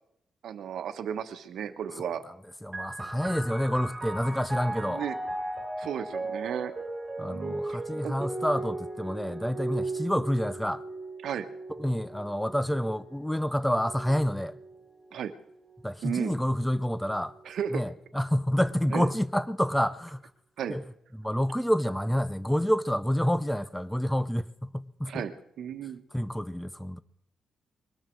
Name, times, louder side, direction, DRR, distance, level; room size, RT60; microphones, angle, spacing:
voice 1, 0.4-2.2 4.7-5.2 5.8-6.7 7.2-8.3 11.2-11.5 15.1-15.3 16.0-16.4 17.4-17.8 18.9-19.1 20.6-20.8 25.1-26.0, right 8 dB, 75° right, 1.2 m, -34 dB
voice 2, 2.6-5.0 7.2-10.8 11.7-14.6 15.8-17.4 17.7-20.3 20.7-20.8 21.1-25.3 26.1-27.0, equal, 5° left, 0.5 m, -28 dB
sound 1, 2.7-16.0 16.8-17.6, right 2 dB, 20° right, 3.8 m, -37 dB
21.0 x 13.0 x 4.6 m
cardioid pair, 120°, 0 cm